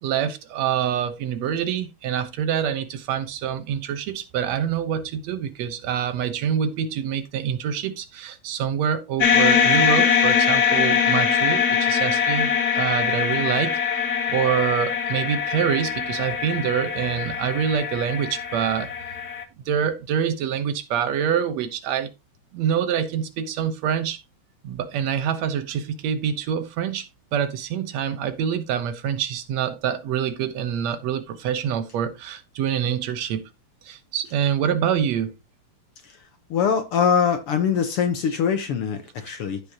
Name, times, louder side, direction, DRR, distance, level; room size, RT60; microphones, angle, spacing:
voice 1, 0.0-14.0 14.3-18.9 19.7-22.1 22.5-24.2 24.6-33.5 33.9-35.3, right 8 dB, 70° right, 2.1 m, -26 dB
sound 1, 9.2-19.4, left 7 dB, 90° left, 0.8 m, -22 dB
voice 2, 36.5-39.6, left 7 dB, 65° left, 1.6 m, -22 dB
14.5 x 5.1 x 2.9 m
omnidirectional pair, 3.4 m